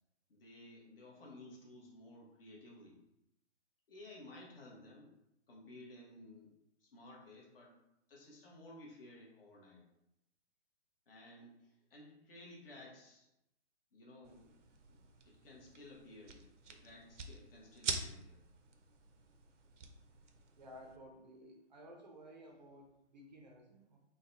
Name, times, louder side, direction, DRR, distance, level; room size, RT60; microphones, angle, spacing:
voice 1, 0.3-3.0 3.9-5.1 5.5-6.5 6.8-7.7 8.1-9.8 11.1-13.3 13.9-14.6 14.9-15.0 15.3-18.4, left 1 dB, 50° left, -3 dB, 1.3 m, -55 dB
sound 1, 14.2-21.0, right 4 dB, 85° right, 0.7 m, -46 dB
voice 2, 20.6-24.0, equal, 40° right, 1 dB, 0.6 m, -55 dB
3.9 x 2.3 x 3.9 m, 0.86 s
hypercardioid pair, 165°, 35 cm